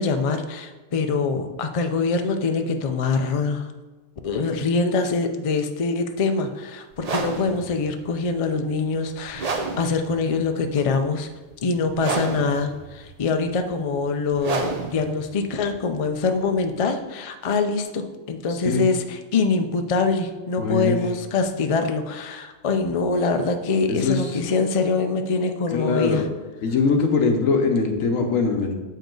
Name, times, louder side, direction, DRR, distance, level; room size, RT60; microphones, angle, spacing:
voice 1, 0.0-3.7 4.2-11.3 11.6-26.2, left 4 dB, 50° left, 7 dB, 0.4 m, -24 dB
sound 1, 6.9-16.8, right 4 dB, 45° right, 0.5 m, -32 dB
voice 2, 18.5-18.8 20.6-21.0 23.9-24.4 25.7-26.2 26.6-28.8, left 4 dB, 90° left, 4 dB, 1.3 m, -22 dB
7.6 x 5.2 x 3.8 m, 1.2 s
omnidirectional pair, 1.3 m